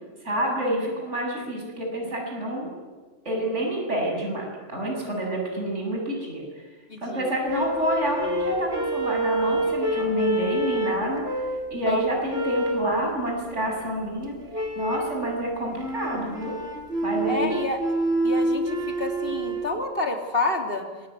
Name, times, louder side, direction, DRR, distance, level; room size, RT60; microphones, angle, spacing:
voice 1, 0.2-2.7 3.2-6.4 7.0-11.3 11.7-14.3 14.7-16.5 17.0-17.5, right 1 dB, 75° right, 0 dB, 8.0 m, -28 dB
voice 2, 6.9-7.4 11.9-12.2 17.3-17.8 18.2-21.1, left 2 dB, 50° left, 4 dB, 3.3 m, -29 dB
sound 1, 7.5-11.7 12.3-12.9 14.5-15.2 15.7-19.7, right 1 dB, 60° right, 4.0 m, -27 dB
26.0 x 22.0 x 9.5 m, 1.3 s
omnidirectional pair, 1.2 m